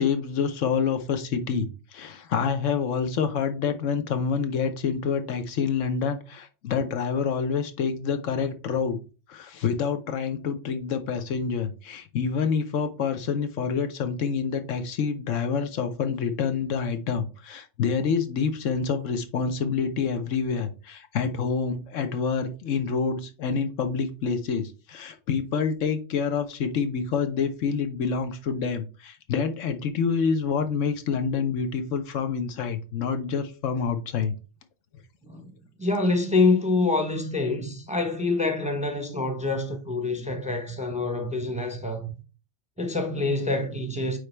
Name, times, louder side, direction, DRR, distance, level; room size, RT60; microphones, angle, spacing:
voice 1, 0.0-9.0 9.3-34.3, left 6 dB, 75° left, 1.1 m, -27 dB
voice 2, 35.8-42.1 42.8-44.2, left 3 dB, 5° right, 0.8 m, -26 dB
8.8 x 3.3 x 3.3 m
omnidirectional pair, 1.3 m